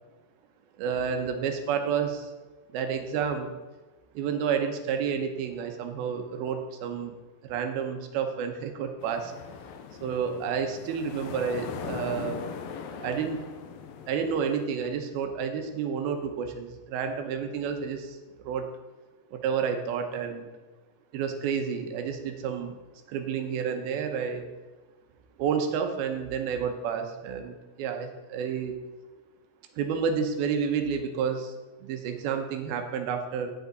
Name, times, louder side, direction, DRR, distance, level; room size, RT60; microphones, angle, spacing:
voice 1, 0.8-2.3 2.7-3.5 4.1-7.2 7.4-9.3 10.0-12.4 13.0-13.4 14.1-18.7 19.3-20.5 21.1-22.8 23.1-24.5 25.4-28.7 29.8-31.5 31.8-33.5, right 6 dB, 90° right, 5 dB, 2.8 m, -30 dB
sound 1, 9.0-14.7, left 6 dB, 80° left, 2.4 m, -40 dB
10.5 x 8.2 x 3.9 m, 1.2 s
omnidirectional pair, 4.3 m